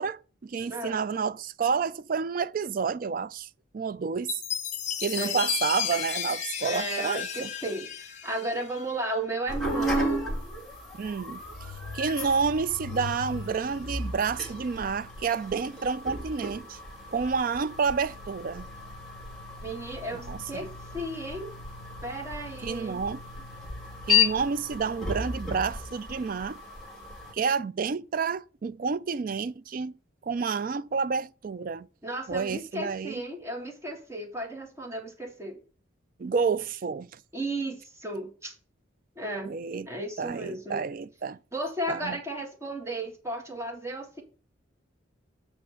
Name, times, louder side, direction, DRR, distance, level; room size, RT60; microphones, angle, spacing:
voice 1, 0.0-3.5 3.7-4.4 5.0-7.5 11.0-11.4 11.9-16.8 17.1-18.7 20.3-20.7 22.6-23.2 24.1-26.6 27.3-29.9 30.2-31.9 32.3-33.2 36.2-37.1 39.4-39.9 40.2-41.4 41.9-42.2, right 5 dB, 45° right, 0.4 m, -29 dB
voice 2, 0.7-1.1 5.2-5.4 6.6-10.2 19.6-20.7 20.9-21.5 22.0-23.0 32.0-35.6 37.3-38.6 39.2-39.5 39.9-40.8 41.5-44.2, right 1 dB, 15° right, 1.8 m, -34 dB
Chime, 4.3-8.9, left 9 dB, 40° left, 1.3 m, -33 dB
sound 1, 9.5-27.3, left 4 dB, ahead, 2.0 m, -34 dB
8.5 x 3.5 x 6.3 m
head